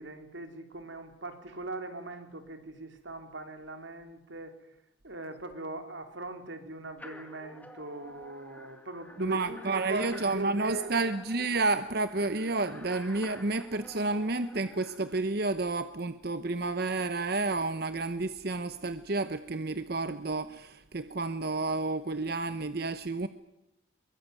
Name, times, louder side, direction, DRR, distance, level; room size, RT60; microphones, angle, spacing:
voice 1, 0.0-4.7 5.0-11.1, right 2 dB, 75° right, 7 dB, 3.3 m, -40 dB
sound 1, 7.0-15.2, left 1 dB, 10° left, 2.1 m, -50 dB
voice 2, 9.2-23.3, right 3 dB, 55° right, 11 dB, 0.9 m, -30 dB
23.5 x 23.0 x 9.4 m, 0.85 s
head